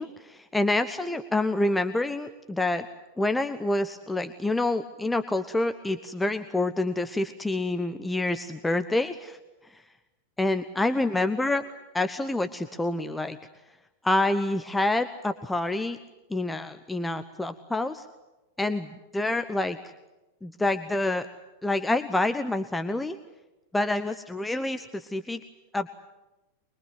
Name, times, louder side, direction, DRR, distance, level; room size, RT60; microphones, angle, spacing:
voice 1, 0.0-2.9 3.2-9.4 9.6-9.8 10.4-11.6 11.9-13.4 14.0-16.0 16.3-18.1 18.6-19.9 20.4-21.3 21.6-23.2 23.7-25.4 25.7-25.9, left 2 dB, 5° left, 9 dB, 1.0 m, -27 dB
24.0 x 22.0 x 9.4 m, 1.0 s
figure-of-eight pair, 90°, 0 cm